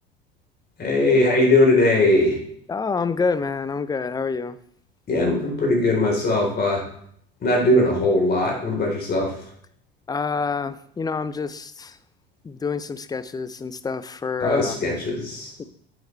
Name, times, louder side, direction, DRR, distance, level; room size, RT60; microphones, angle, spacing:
voice 1, 0.8-2.4 5.1-6.9 7.4-9.3 14.4-15.5, left 2 dB, 30° left, -1 dB, 3.6 m, -20 dB
voice 2, 2.7-4.6 10.1-12.0 12.4-14.8 15.6-15.7, left 4 dB, 15° left, 14 dB, 0.5 m, -27 dB
9.0 x 8.0 x 3.2 m, 0.65 s
figure-of-eight pair, 65°, 30 cm